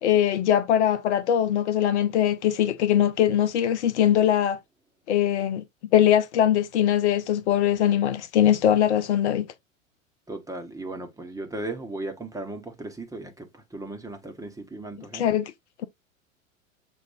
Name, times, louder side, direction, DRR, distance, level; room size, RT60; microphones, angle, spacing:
voice 1, 0.0-4.6 5.1-5.6 5.9-9.5 15.1-15.5, left 10 dB, 60° left, 0.7 m, -21 dB
voice 2, 10.3-15.2, right 2 dB, 10° right, 1.2 m, -36 dB
7.3 x 2.5 x 2.6 m
figure-of-eight pair, 90°, 40 cm